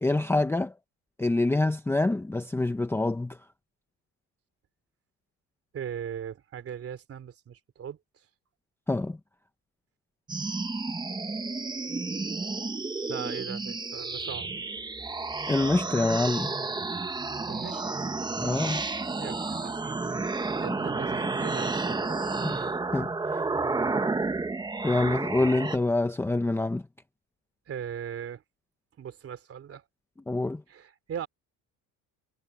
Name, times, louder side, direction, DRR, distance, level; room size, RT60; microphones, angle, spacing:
voice 1, 0.0-0.7 1.2-3.4 8.9-9.2 15.5-16.5 18.4-18.8 22.4-23.1 24.8-26.8 30.3-30.6, left 2 dB, 5° left, 0.7 m, -26 dB
voice 2, 5.7-8.0 13.1-14.5 17.5-17.8 19.2-20.1 20.6-22.2 27.7-28.4 29.0-29.8 30.7-31.3, right 8 dB, 40° right, 3.0 m, -39 dB
sound 1, 10.3-25.8, right 3 dB, 10° right, 1.0 m, -31 dB
cardioid pair, 150°, 37 cm